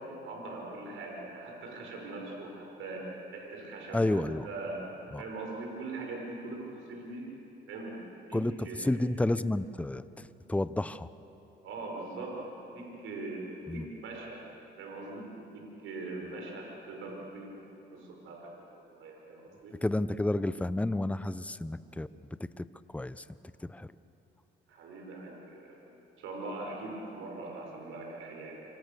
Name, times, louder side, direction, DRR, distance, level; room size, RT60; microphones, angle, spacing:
voice 1, 0.0-4.8 5.2-7.3 7.7-9.1 11.6-13.5 13.7-14.4 14.8-17.6 17.9-19.7 24.7-25.8 26.2-28.6, right 2 dB, 85° right, -1 dB, 5.5 m, -41 dB
voice 2, 3.9-4.5 5.1-5.2 8.3-8.5 8.8-11.1 13.7-13.8 19.8-22.1 22.6-23.2 23.6-23.9, left 1 dB, 5° left, 14 dB, 0.7 m, -31 dB
28.5 x 24.5 x 6.9 m, 3.0 s
cardioid pair, 90°, 20 cm